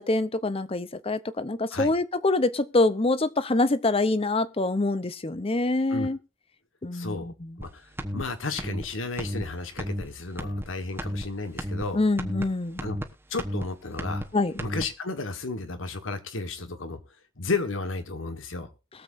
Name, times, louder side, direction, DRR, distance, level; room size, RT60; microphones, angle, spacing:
voice 1, 0.0-6.2 6.8-7.5 11.9-12.8 14.3-14.5, left 2 dB, 30° left, 0.7 m, -25 dB
voice 2, 6.9-7.3 7.6-12.0 12.8-13.0 13.3-14.3 14.6-17.0 17.4-18.7, left 3 dB, 75° left, 1.5 m, -33 dB
sound 1, 7.6-7.7 8.0-8.2 8.6-8.8 9.2-9.4 9.8-10.0 10.4-10.7 11.0-11.2 11.6-11.8 12.2-12.4 12.8-13.1 13.4-13.6 14.0-14.2 14.6-14.8, equal, 10° right, 1.1 m, -32 dB
21.5 x 7.5 x 2.6 m
head